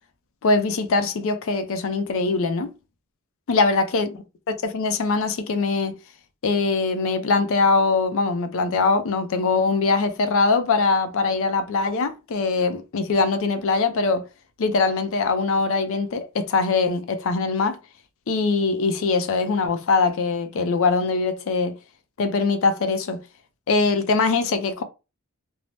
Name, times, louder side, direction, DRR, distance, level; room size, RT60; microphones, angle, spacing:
voice 1, 0.4-2.7 3.5-4.2 4.5-5.9 6.4-14.2 14.6-17.8 18.3-21.8 22.2-23.2 23.7-24.8, left 4 dB, 65° left, 0.4 m, -22 dB
2.6 x 2.0 x 3.1 m
head